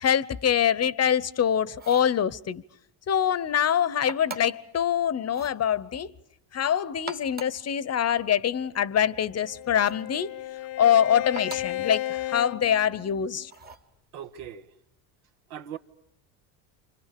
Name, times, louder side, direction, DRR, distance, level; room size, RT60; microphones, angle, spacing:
voice 1, 0.0-2.6 3.1-6.1 6.5-10.3 10.8-13.5, left 9 dB, 30° left, 1.0 m, -24 dB
sound 1, 1.7-2.2 4.1-4.7 5.3-5.6 6.9-7.7 9.7-10.1 11.4-11.8 13.5-13.9, right 4 dB, 20° right, 1.4 m, -41 dB
Bowed string instrument, 9.0-13.5, left 14 dB, 65° left, 1.1 m, -35 dB
voice 2, 14.1-14.7 15.5-15.8, right 9 dB, 75° right, 1.7 m, -39 dB
29.0 x 25.5 x 6.8 m
supercardioid pair, 95°, 47 cm